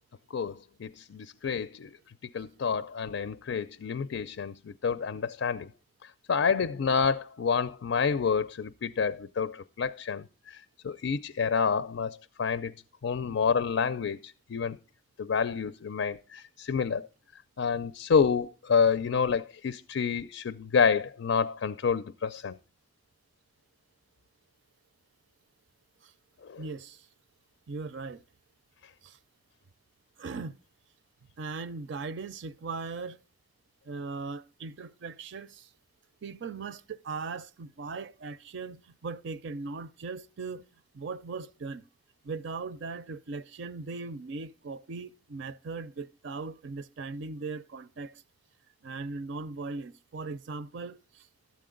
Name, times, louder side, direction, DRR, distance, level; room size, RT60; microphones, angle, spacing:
voice 1, 0.3-1.9 2.3-5.7 6.3-12.7 13.0-14.8 15.2-17.0 17.6-22.6 26.4-26.6, left 6 dB, 75° left, 0.4 m, -28 dB
voice 2, 26.6-27.1 27.7-28.2 29.0-29.2 30.2-30.5 31.4-33.2 33.9-35.7 36.2-40.7 40.9-41.8 42.2-48.2 48.8-51.3, right 4 dB, 65° right, 0.5 m, -39 dB
12.5 x 8.5 x 3.8 m
head